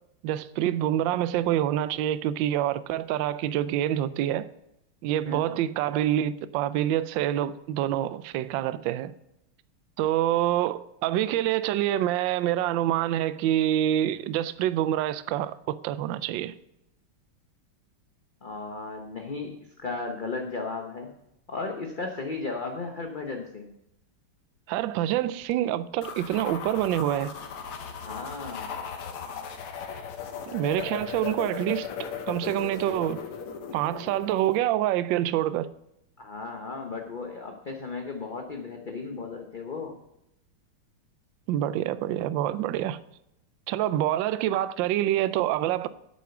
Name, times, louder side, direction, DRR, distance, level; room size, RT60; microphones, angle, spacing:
voice 1, 0.2-4.5 5.0-9.1 10.0-16.5 24.7-27.3 30.4-33.2 33.7-35.7 41.5-43.0 43.7-45.9, right 12 dB, 75° right, 1.2 m, -26 dB
voice 2, 5.2-5.6 18.4-21.1 21.5-23.7 28.0-28.8 36.2-40.0, left 3 dB, 40° left, 0.7 m, -35 dB
sound 1, 26.0-34.6, left 7 dB, 85° left, 2.0 m, -37 dB
8.5 x 8.4 x 5.9 m
omnidirectional pair, 2.3 m